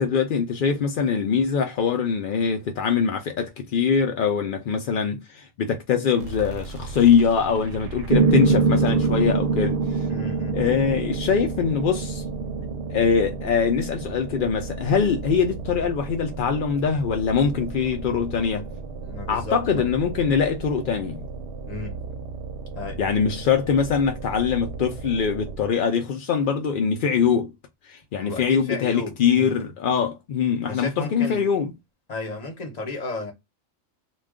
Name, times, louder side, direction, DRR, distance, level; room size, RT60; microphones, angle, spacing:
voice 1, 0.0-10.1 10.5-12.2 12.9-18.7 19.3-21.3 23.0-27.5 27.8-31.7, left 6 dB, 65° left, 0.5 m, -23 dB
sound 1, 6.2-25.8, right 4 dB, 70° right, 0.8 m, -36 dB
Piano, 8.1-16.2, right 5 dB, 85° right, 0.4 m, -25 dB
voice 2, 10.1-10.6 19.0-19.8 21.7-22.0 22.8-23.0 28.2-29.7 30.6-31.4 32.1-33.3, left 3 dB, 35° left, 0.9 m, -34 dB
2.3 x 2.3 x 3.4 m
omnidirectional pair, 1.4 m